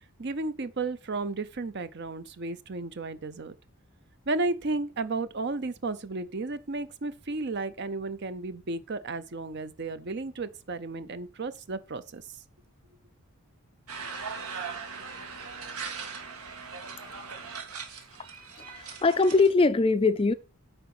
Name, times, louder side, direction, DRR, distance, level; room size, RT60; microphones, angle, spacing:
voice 1, 0.2-3.5 4.3-12.2, right 3 dB, 50° right, 0.7 m, -33 dB
sound 1, 13.9-19.5, right 5 dB, 80° right, 1.7 m, -39 dB
voice 2, 18.6-20.3, left 3 dB, 25° left, 0.4 m, -22 dB
8.9 x 4.8 x 6.0 m
head